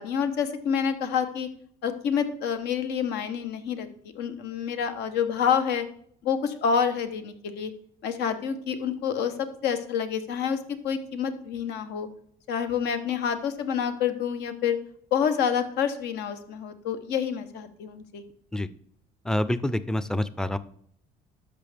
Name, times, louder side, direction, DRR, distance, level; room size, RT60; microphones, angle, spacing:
voice 1, 0.0-1.5 1.8-3.9 4.1-5.8 6.2-7.7 8.0-10.6 10.8-12.1 12.5-14.8 15.1-18.2, left 7 dB, 80° left, 8 dB, 1.1 m, -28 dB
voice 2, 19.3-20.6, left 1 dB, 5° left, 14 dB, 0.4 m, -27 dB
12.5 x 5.5 x 3.5 m, 0.63 s
cardioid pair, 110°, 17 cm